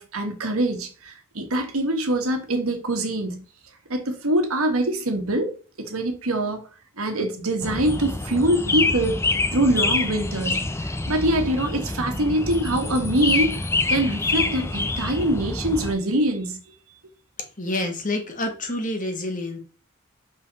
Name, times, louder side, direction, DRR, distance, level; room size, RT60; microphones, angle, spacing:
voice 1, 0.0-3.4 3.9-6.7 7.0-16.6, right 1 dB, 80° right, 1.6 m, -24 dB
sound 1, 7.6-15.9, left 3 dB, 10° left, 0.5 m, -26 dB
voice 2, 17.6-19.6, left 2 dB, 35° left, 1.5 m, -28 dB
5.5 x 5.5 x 4.1 m
head